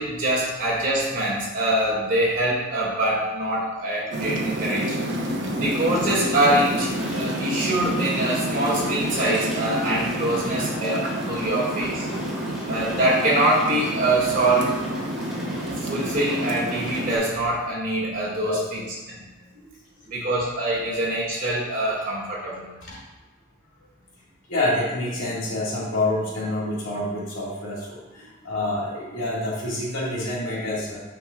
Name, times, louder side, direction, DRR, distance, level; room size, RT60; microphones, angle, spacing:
voice 1, 0.0-5.0 5.6-12.0 12.7-14.8 15.8-18.8 19.1-19.4 20.1-22.7, right 1 dB, 45° right, -6 dB, 2.2 m, -24 dB
sound 1, 4.1-17.2, equal, 60° right, 1.0 m, -28 dB
sound 2, 7.0-17.3, equal, ahead, 1.3 m, -40 dB
voice 2, 24.5-31.0, left 1 dB, 80° left, -5 dB, 2.1 m, -27 dB
8.9 x 5.8 x 2.4 m, 1.2 s
head